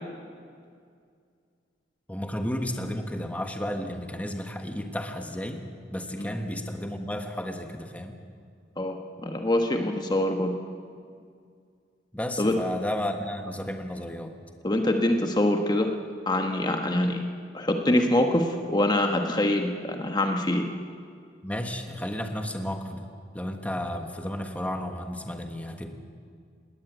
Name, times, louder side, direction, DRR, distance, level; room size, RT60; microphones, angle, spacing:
voice 1, 2.1-5.6 5.9-8.2 12.1-14.3 21.4-23.1 23.3-25.9, left 1 dB, 10° left, 5 dB, 1.4 m, -32 dB
voice 2, 8.8-10.5 12.4-12.5 14.6-15.9 16.3-17.2 17.5-20.6, left 1 dB, 25° left, 4 dB, 1.3 m, -24 dB
19.5 x 19.0 x 9.2 m, 2.2 s
head